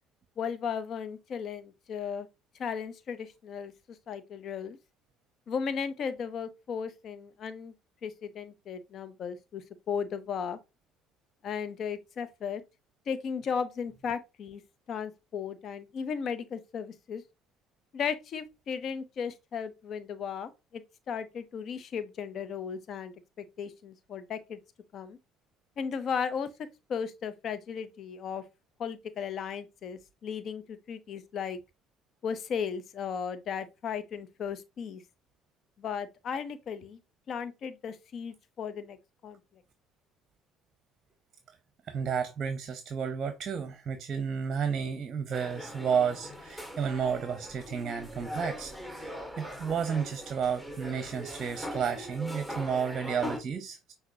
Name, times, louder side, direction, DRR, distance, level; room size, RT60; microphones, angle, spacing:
voice 1, 0.4-2.3 2.6-3.7 4.1-4.8 5.5-7.7 8.0-10.6 11.4-12.6 13.1-14.6 14.9-17.2 17.9-24.6 24.9-25.2 25.8-26.5 26.9-28.4 28.8-31.6 32.2-35.0 35.8-37.0 37.3-39.0 39.2-39.4, left 6 dB, 55° left, 0.7 m, -35 dB
voice 2, 41.9-53.9, right 6 dB, 45° right, 0.7 m, -32 dB
sound 1, 45.3-53.4, equal, 5° left, 1.9 m, -41 dB
5.9 x 2.8 x 2.7 m
hypercardioid pair, 65°, 0 cm